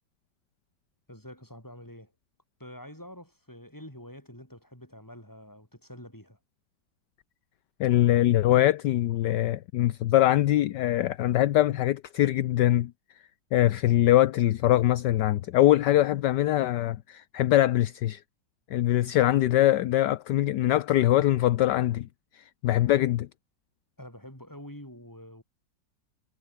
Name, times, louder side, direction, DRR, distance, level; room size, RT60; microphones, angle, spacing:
voice 1, 1.1-2.1 2.6-6.4 24.0-25.4, left 1 dB, 10° left, 6.7 m, -46 dB
voice 2, 7.8-12.9 13.5-18.2 18.7-22.1 22.3-23.3, left 14 dB, 70° left, 1.2 m, -23 dB
omnidirectional pair, 2.1 m